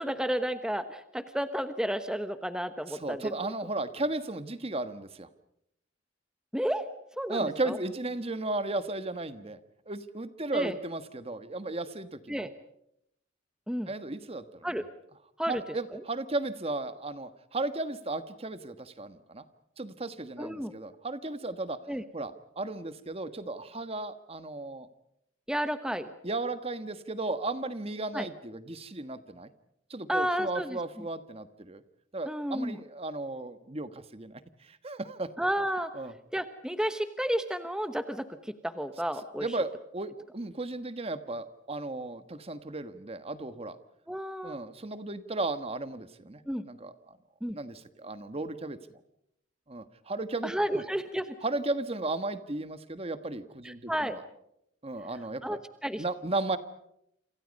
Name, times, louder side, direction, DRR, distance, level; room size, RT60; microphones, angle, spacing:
voice 1, 0.0-3.3 6.5-6.9 7.2-7.8 10.5-10.8 12.3-12.5 13.7-13.9 14.6-14.8 15.4-15.6 15.9-16.0 20.4-20.7 21.9-22.0 25.5-26.1 28.1-28.3 30.1-30.8 32.2-32.8 35.4-35.9 36.3-39.6 44.1-44.6 46.5-46.6 47.4-47.6 50.4-51.4 53.6-54.2 55.4-56.0, equal, 5° right, 10 dB, 1.1 m, -32 dB
voice 2, 3.0-5.3 7.3-9.6 9.9-12.5 13.9-14.4 15.5-19.4 19.8-21.8 22.1-24.9 26.2-29.5 29.9-31.8 32.1-34.4 34.7-35.3 35.9-36.1 39.4-43.8 44.4-47.2 47.5-48.8 49.7-50.8 51.4-54.2 54.8-55.6 56.0-56.6, right 2 dB, 30° right, 11 dB, 1.4 m, -35 dB
29.0 x 27.0 x 5.4 m, 0.77 s
head